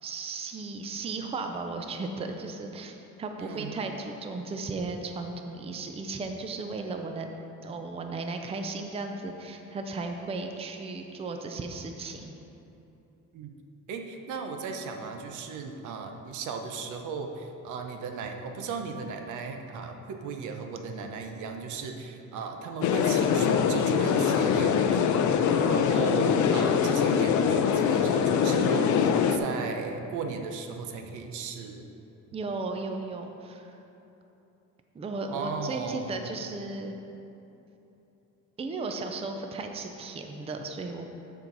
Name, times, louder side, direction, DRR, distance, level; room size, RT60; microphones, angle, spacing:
voice 1, 0.0-7.3 7.6-12.3 32.3-33.7 34.9-36.9 38.6-41.1, right 3 dB, 20° right, 4 dB, 0.5 m, -35 dB
voice 2, 3.4-3.8 13.3-13.5 13.9-25.1 25.6-31.8 35.3-36.1, right 5 dB, 75° right, 4 dB, 0.9 m, -36 dB
sound 1, 22.8-29.4, left 7 dB, 70° left, 0.6 m, -23 dB
13.0 x 4.6 x 3.9 m, 3.0 s
cardioid pair, 135°, 30 cm